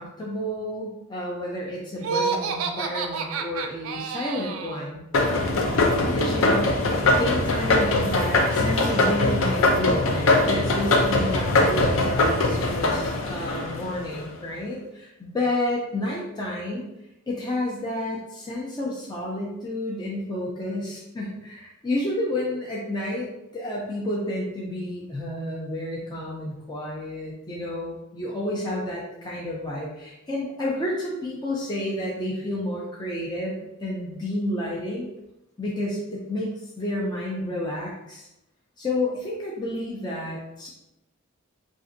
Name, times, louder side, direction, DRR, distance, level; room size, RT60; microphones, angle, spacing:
voice 1, 0.0-5.0 6.0-16.9 17.3-33.5 33.8-35.1 35.6-38.3 38.8-40.7, left 1 dB, 20° left, -4 dB, 0.5 m, -30 dB
Laughter, 2.0-4.8, right 5 dB, 85° right, 0.3 m, -29 dB
sound 1, 5.1-14.2, left 2 dB, 70° left, 0.5 m, -22 dB
3.8 x 2.5 x 2.6 m, 0.89 s
head